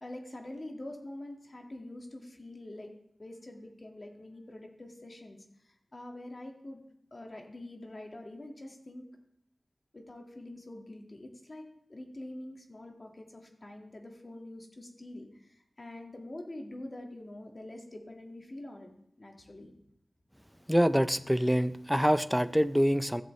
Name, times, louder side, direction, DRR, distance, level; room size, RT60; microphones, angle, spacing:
voice 1, 0.0-2.9 3.2-6.8 7.1-9.1 9.9-19.7, left 1 dB, 45° left, 2 dB, 1.8 m, -45 dB
voice 2, 20.7-23.2, equal, ahead, 12 dB, 0.5 m, -25 dB
14.5 x 7.6 x 3.2 m, 0.74 s
wide cardioid pair, 65°, 0 cm